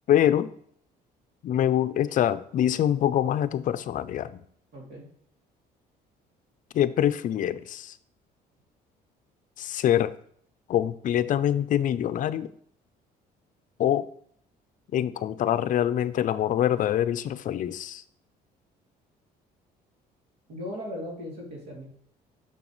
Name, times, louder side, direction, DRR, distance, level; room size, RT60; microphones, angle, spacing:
voice 1, 0.1-0.5 1.4-4.4 6.7-8.0 9.6-10.1 10.7-12.5 13.8-14.1 14.9-18.0, left 11 dB, 50° left, 14 dB, 0.5 m, -25 dB
voice 2, 4.7-5.1 20.5-21.8, left 1 dB, 75° right, -3 dB, 3.0 m, -37 dB
6.9 x 5.9 x 3.1 m, 0.63 s
cardioid pair, 110°, 17 cm